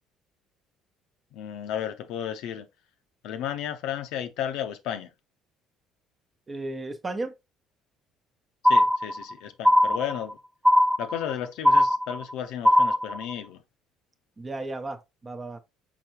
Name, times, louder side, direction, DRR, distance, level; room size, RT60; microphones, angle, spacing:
voice 1, 1.3-2.7 3.2-5.1 8.6-10.4 11.0-13.6, left 10 dB, 70° left, 0.7 m, -33 dB
voice 2, 6.5-7.3 14.4-15.6, right 2 dB, 30° right, 0.9 m, -34 dB
sound 1, 8.6-9.3 9.6-10.3 10.6-11.3 11.6-12.3 12.6-13.3, equal, 10° right, 0.5 m, -20 dB
4.5 x 4.0 x 2.9 m
hypercardioid pair, 65°, 0 cm